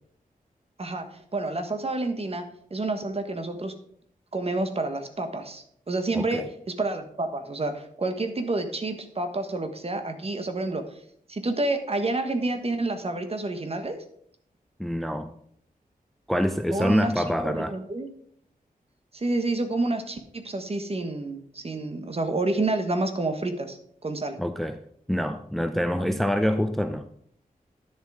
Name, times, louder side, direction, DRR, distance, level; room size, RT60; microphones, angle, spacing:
voice 1, 0.8-3.7 4.3-10.9 11.3-14.0 16.7-18.1 19.1-24.4 26.0-26.1, right 2 dB, 40° right, 8 dB, 1.4 m, -29 dB
voice 2, 6.2-6.5 14.8-15.3 16.3-17.7 24.4-24.8 25.1-27.1, equal, ahead, 9 dB, 0.6 m, -26 dB
10.5 x 7.2 x 4.9 m, 0.66 s
wide cardioid pair, 90°, 15 cm